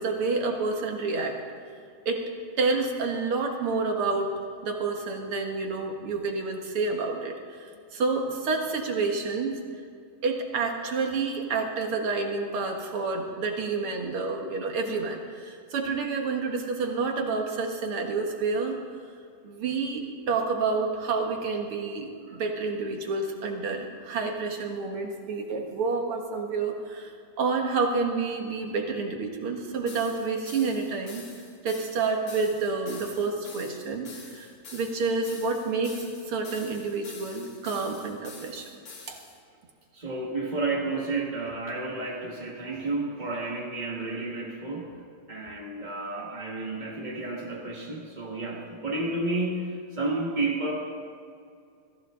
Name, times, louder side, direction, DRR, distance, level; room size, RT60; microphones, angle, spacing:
voice 1, 0.0-1.4 2.1-2.3 2.6-4.3 4.6-9.6 10.2-18.8 19.4-31.2 31.6-38.7 39.1-39.2, right 4 dB, 50° right, 2 dB, 1.9 m, -29 dB
sound 1, 29.9-39.4, left 3 dB, 50° left, 2.6 m, -47 dB
voice 2, 39.9-44.9 45.3-50.7, right 2 dB, 30° right, -4 dB, 0.8 m, -31 dB
22.5 x 14.5 x 3.8 m, 2.3 s
omnidirectional pair, 3.7 m